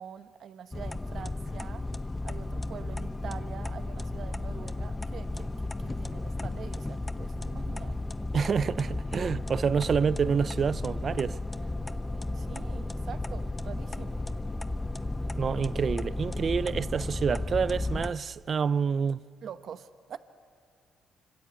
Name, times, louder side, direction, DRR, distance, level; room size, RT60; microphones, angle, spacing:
voice 1, 0.0-1.8 2.2-8.0 12.3-14.2 19.4-20.2, right 8 dB, 60° right, 1.1 m, -45 dB
sound 1, 0.7-18.1, left 2 dB, 15° left, 0.9 m, -34 dB
voice 2, 8.3-11.4 15.4-19.2, right 6 dB, 45° right, 0.6 m, -27 dB
sound 2, 9.3-16.2, right 3 dB, 25° right, 1.4 m, -53 dB
26.0 x 25.0 x 8.3 m
cardioid pair, 90°, 0 cm